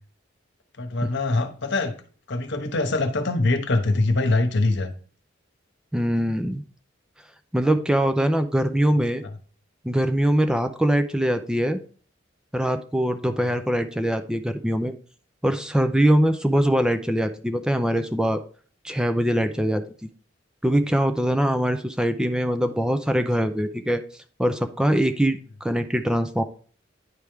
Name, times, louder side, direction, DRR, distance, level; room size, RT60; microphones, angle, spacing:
voice 1, 0.8-1.9 2.3-4.9 9.0-9.3, left 2 dB, 65° left, 7 dB, 1.0 m, -23 dB
voice 2, 5.9-6.6 7.5-9.2 9.8-11.8 12.5-14.9 15.4-18.4 18.8-19.8 20.6-24.0 24.4-26.4, equal, 5° right, 8 dB, 0.4 m, -22 dB
9.7 x 3.5 x 4.5 m, 0.43 s
head